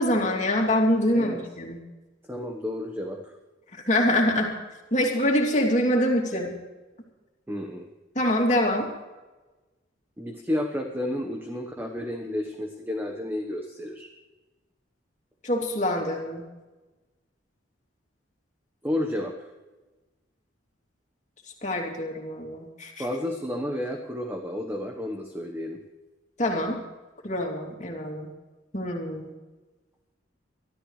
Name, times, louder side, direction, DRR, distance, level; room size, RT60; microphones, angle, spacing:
voice 1, 0.0-1.8 3.9-4.5 4.9-6.5 8.1-8.9 15.4-16.4 21.6-23.0 26.4-26.8 27.2-28.3 28.7-29.3, left 1 dB, 40° left, 0 dB, 2.9 m, -25 dB
voice 2, 2.3-3.3 7.5-7.9 10.2-14.1 18.8-19.5 23.0-25.8, left 1 dB, 10° right, 2 dB, 1.2 m, -31 dB
23.5 x 13.5 x 3.2 m, 1.2 s
head